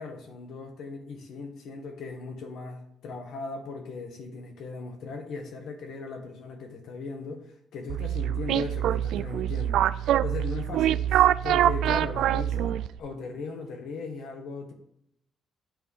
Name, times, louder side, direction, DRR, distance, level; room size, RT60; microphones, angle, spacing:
voice 1, 0.0-14.7, left 4 dB, 65° left, 4 dB, 1.7 m, -38 dB
sound 1, 7.9-13.0, right 11 dB, 80° right, 0.3 m, -25 dB
9.0 x 4.8 x 5.6 m, 0.76 s
cardioid pair, 155°, 0 cm